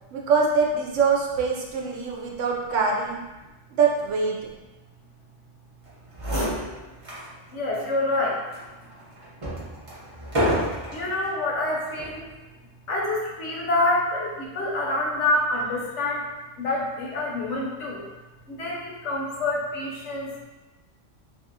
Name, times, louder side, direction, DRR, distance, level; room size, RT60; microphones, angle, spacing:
voice 1, 0.1-3.2 3.8-4.4, right 5 dB, 80° right, -2 dB, 0.9 m, -23 dB
sound 1, 5.9-6.0 6.1-7.3 7.7-7.9 8.5-11.1 11.9-12.2, equal, 30° right, 0.8 m, -28 dB
voice 2, 7.5-8.4 10.0-10.1 10.9-12.3 12.8-16.3 16.6-18.1 18.5-20.4, left 2 dB, 75° left, -3 dB, 1.0 m, -27 dB
2.8 x 2.7 x 2.5 m, 1.1 s
omnidirectional pair, 1.2 m